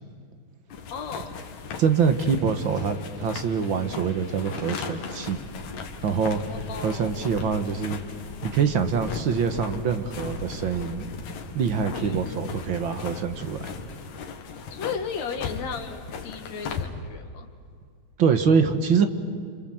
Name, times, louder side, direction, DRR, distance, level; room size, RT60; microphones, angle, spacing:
sound 1, 0.7-16.9, left 6 dB, 85° left, 3.1 m, -38 dB
voice 1, 0.9-1.3 6.3-7.1 12.0-12.2 14.7-17.5, left 6 dB, 65° left, 5 dB, 3.1 m, -35 dB
voice 2, 1.8-5.4 6.0-6.4 6.8-8.0 8.4-11.0 11.5-13.6 18.2-19.1, right 6 dB, 50° right, 8 dB, 1.7 m, -24 dB
sound 2, 5.2-13.9, left 2 dB, 40° left, 2.3 m, -43 dB
sound 3, 8.1-14.2, right 1 dB, 70° right, 5.8 m, -46 dB
28.0 x 27.5 x 7.8 m, 2.2 s
omnidirectional pair, 3.3 m